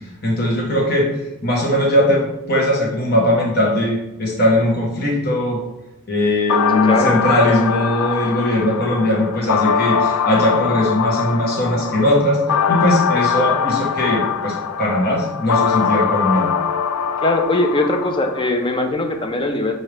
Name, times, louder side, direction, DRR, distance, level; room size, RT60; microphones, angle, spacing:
voice 1, 0.2-1.1 1.4-5.6 6.1-12.4 12.7-16.5, left 1 dB, 45° left, -2 dB, 1.0 m, -19 dB
sound 1, 6.5-18.5, left 7 dB, 85° left, 0.3 m, -22 dB
voice 2, 6.9-7.2 17.2-19.8, left 2 dB, 25° left, 4 dB, 0.4 m, -20 dB
6.0 x 2.7 x 3.3 m, 0.94 s
head